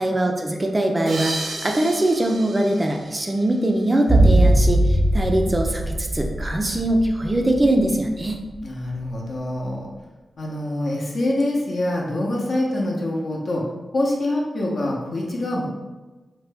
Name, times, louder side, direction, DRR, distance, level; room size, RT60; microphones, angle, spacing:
voice 1, 0.0-8.4, right 1 dB, 25° right, 2 dB, 0.3 m, -22 dB
sound 1, 1.1-4.1, right 2 dB, 80° right, 0.5 m, -34 dB
sound 2, 4.1-8.3 8.6-8.7, right 1 dB, 15° left, 0.7 m, -20 dB
voice 2, 8.6-9.9 10.4-13.6 13.9-15.7, left 1 dB, 60° left, -2 dB, 0.6 m, -25 dB
2.8 x 2.1 x 3.3 m, 1.2 s
wide cardioid pair, 95°, 0 cm